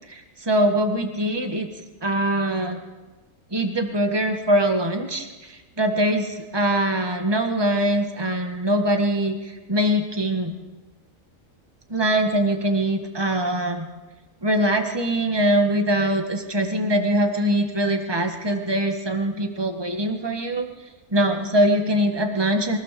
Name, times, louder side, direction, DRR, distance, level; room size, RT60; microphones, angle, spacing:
voice 1, 0.1-1.7 2.0-2.8 3.5-10.6 11.9-13.9 14.4-20.7 21.1-22.8, right 1 dB, 20° right, 4 dB, 1.8 m, -22 dB
23.5 x 16.0 x 6.9 m, 1.2 s
omnidirectional pair, 1.4 m